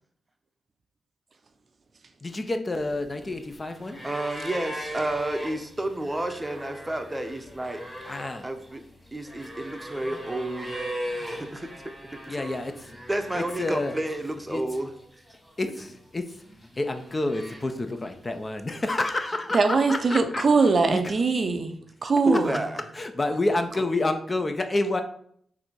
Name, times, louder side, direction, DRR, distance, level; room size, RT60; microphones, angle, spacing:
voice 1, 2.2-4.0 8.0-8.5 12.3-12.7 13.3-14.0 14.5-14.6 15.6-16.4 16.8-21.0 22.9-25.0, left 2 dB, 35° left, 0.6 m, -29 dB
sound 1, 2.7-14.4 14.7-15.6 16.3-18.0 19.1-19.2, equal, 5° left, 1.6 m, -39 dB
voice 2, 4.0-7.8 8.4-8.8 9.1-10.9 11.1-11.7 12.3-12.4 13.1-14.9 22.2-22.8, right 1 dB, 15° right, 0.7 m, -30 dB
voice 3, 19.5-22.5, right 4 dB, 50° right, 0.5 m, -22 dB
3.9 x 2.7 x 4.5 m
cardioid pair, 55°, 0 cm